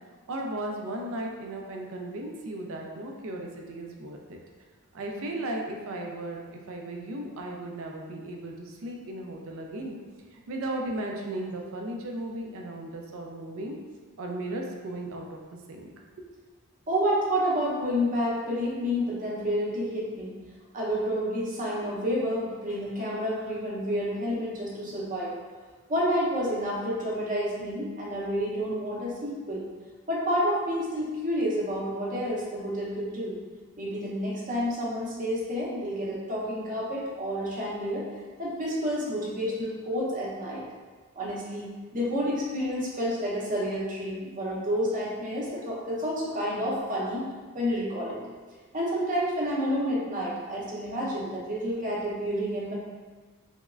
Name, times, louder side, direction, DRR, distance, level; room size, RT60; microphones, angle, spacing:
voice 1, 0.3-4.4 4.9-10.0 10.3-13.7 14.2-15.4 15.7-15.9 16.2-16.3, right 1 dB, 65° right, 1 dB, 0.5 m, -36 dB
voice 2, 16.9-20.4 20.7-25.3 25.9-29.6 30.1-33.4 33.8-38.1 38.4-40.6 41.2-47.2 47.5-48.2 48.7-52.7, equal, 35° right, -5 dB, 0.8 m, -29 dB
3.4 x 3.1 x 2.4 m, 1.4 s
head